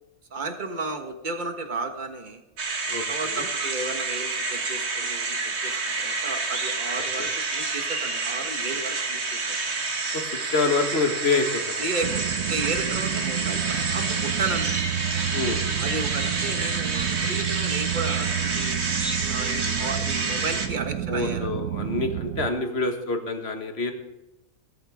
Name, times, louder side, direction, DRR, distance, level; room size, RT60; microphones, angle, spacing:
voice 1, 0.3-2.4 3.1-9.6 11.8-14.7 15.8-18.8 19.3-21.5, right 3 dB, 35° right, 6 dB, 1.5 m, -33 dB
sound 1, 2.6-20.7, right 3 dB, 50° right, 1.7 m, -29 dB
voice 2, 2.9-3.5 7.2-7.3 10.1-10.3 10.5-11.9 15.3-15.6 21.1-23.9, left 3 dB, 45° left, 5 dB, 1.8 m, -27 dB
sound 2, 12.0-22.5, right 11 dB, 75° right, 1.0 m, -30 dB
18.0 x 13.5 x 3.6 m, 0.99 s
omnidirectional pair, 1.5 m